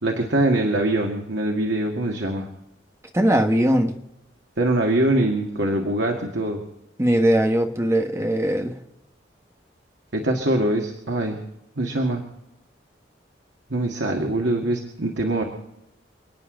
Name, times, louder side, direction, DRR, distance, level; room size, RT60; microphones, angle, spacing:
voice 1, 0.0-2.5 4.6-6.6 10.1-11.4 11.8-12.2 13.7-15.4, right 1 dB, 85° right, 2 dB, 2.0 m, -23 dB
voice 2, 3.1-3.9 7.0-8.7, right 1 dB, 15° right, 5 dB, 1.5 m, -20 dB
29.0 x 9.8 x 3.9 m, 0.89 s
head